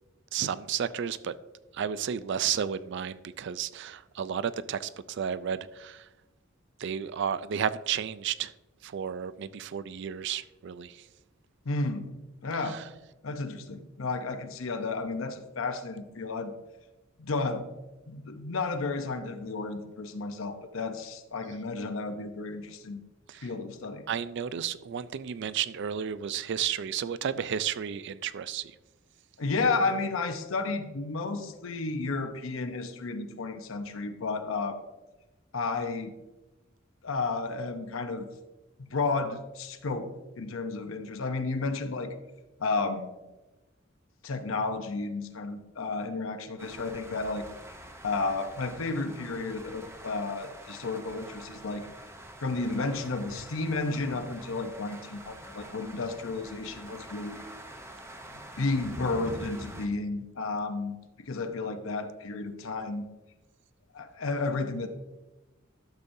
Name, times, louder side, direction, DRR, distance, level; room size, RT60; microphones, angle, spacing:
voice 1, 0.3-1.3 1.7-6.0 6.8-8.5 8.8-11.0 12.7-12.8 23.3-23.5 24.1-28.7, right 8 dB, 60° right, 15 dB, 0.4 m, -32 dB
voice 2, 11.6-12.1 12.4-12.8 13.2-16.5 17.2-17.6 18.1-23.0 23.4-24.0 29.4-34.8 35.5-36.1 37.0-38.3 38.8-40.1 40.4-42.1 42.6-43.1 44.2-47.5 48.0-51.9 52.4-57.4 58.3-63.1 63.9-64.9, left 3 dB, 85° left, 7 dB, 0.8 m, -32 dB
sound 1, 46.6-59.9, right 1 dB, 15° right, 0.7 m, -46 dB
12.0 x 6.9 x 2.7 m, 1.1 s
head